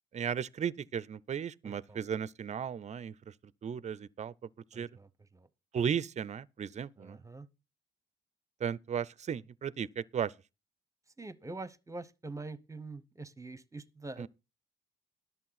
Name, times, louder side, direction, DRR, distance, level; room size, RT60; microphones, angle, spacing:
voice 1, 0.1-3.3 3.6-4.3 4.7-4.9 5.7-7.2 8.6-10.3 14.2-14.3, right 8 dB, 35° right, 0.5 m, -35 dB
voice 2, 1.6-2.0 4.7-5.5 7.0-7.5 11.2-14.3, right 3 dB, 15° right, 0.8 m, -45 dB
11.0 x 7.1 x 5.8 m
cardioid pair, 90°, 20 cm